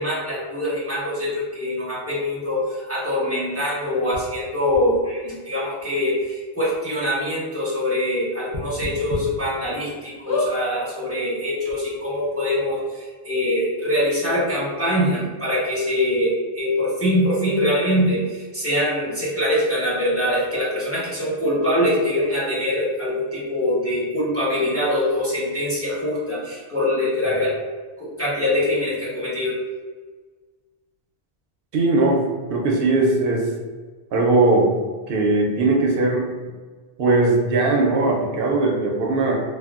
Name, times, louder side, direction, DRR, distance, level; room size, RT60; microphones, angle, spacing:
voice 1, 0.0-27.6 28.0-29.6, left 1 dB, 15° right, -9 dB, 1.0 m, -23 dB
sound 1, 4.1-4.2 4.7-4.8 5.8-5.9 6.2-6.3 6.7-6.8 8.5-9.2 9.7-9.8 10.2-10.5 11.4-11.5 11.6-11.7, left 1 dB, 40° left, 0.7 m, -28 dB
voice 2, 31.7-32.2 32.5-33.5 34.1-34.7 35.1-36.3 37.0-39.4, right 2 dB, 65° right, -1 dB, 0.7 m, -19 dB
3.3 x 2.2 x 2.4 m, 1.4 s
omnidirectional pair, 1.1 m